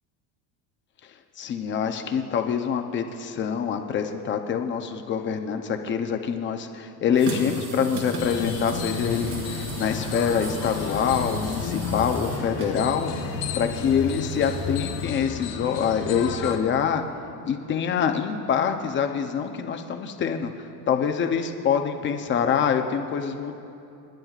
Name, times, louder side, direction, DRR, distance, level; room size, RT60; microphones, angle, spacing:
voice 1, 1.4-17.0 17.4-23.5, left 7 dB, 30° left, 5 dB, 0.6 m, -25 dB
sound 1, 7.2-15.0, right 3 dB, 65° right, 3.1 m, -36 dB
sound 2, 8.2-16.6, left 6 dB, 60° left, 1.3 m, -32 dB
28.5 x 10.5 x 2.4 m, 2.7 s
cardioid pair, 160°, 40 cm